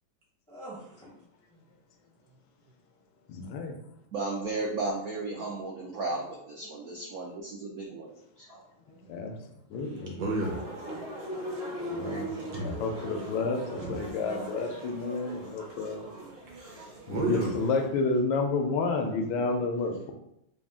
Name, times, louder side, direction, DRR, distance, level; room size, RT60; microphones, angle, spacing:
voice 1, 0.5-1.1 1.5-1.6 5.5-5.7 6.6-7.1 7.4-7.9 8.8-9.8 14.2-14.4, right 1 dB, 10° left, -5 dB, 0.3 m, -49 dB
voice 2, 3.3-3.8 9.1-9.3 9.7-10.2 11.9-16.0 17.1-20.1, left 3 dB, 75° left, 4 dB, 1.3 m, -30 dB
voice 3, 4.1-8.1 8.5-8.6, right 3 dB, 90° right, -3 dB, 0.8 m, -34 dB
voice 4, 9.8-10.6 10.9-11.0 12.5-13.4 13.7-14.2 16.4-17.5, right 2 dB, 70° right, -1 dB, 1.0 m, -34 dB
sound 1, 10.4-17.9, right 1 dB, 50° right, 0.7 m, -40 dB
3.8 x 2.3 x 3.5 m, 0.79 s
omnidirectional pair, 2.2 m